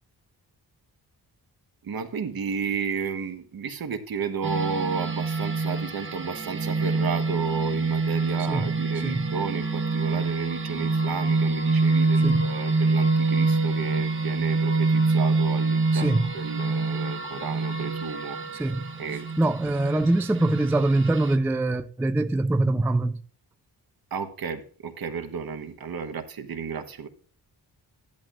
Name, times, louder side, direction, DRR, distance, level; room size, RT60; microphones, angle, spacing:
voice 1, 1.8-18.4 19.0-19.5 24.1-27.1, right 6 dB, 60° right, 1.1 m, -32 dB
sound 1, 4.4-21.4, right 3 dB, 30° right, 1.1 m, -26 dB
voice 2, 15.9-16.2 18.6-18.9 19.4-23.2, right 2 dB, 5° right, 0.3 m, -24 dB
11.0 x 10.5 x 2.4 m
wide cardioid pair, 125°, 40 cm